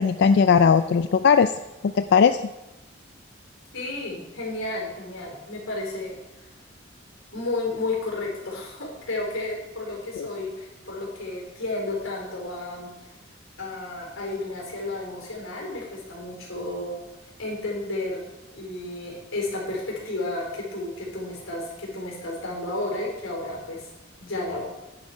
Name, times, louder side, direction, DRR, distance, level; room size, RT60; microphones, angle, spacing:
voice 1, 0.0-1.5 1.9-2.4 10.2-10.3, left 6 dB, 55° left, 11 dB, 0.3 m, -18 dB
voice 2, 3.7-6.2 7.3-12.9 13.6-17.0 17.4-23.9 24.2-24.6, left 2 dB, 90° left, -2 dB, 4.5 m, -32 dB
10.5 x 9.6 x 4.9 m, 1.0 s
head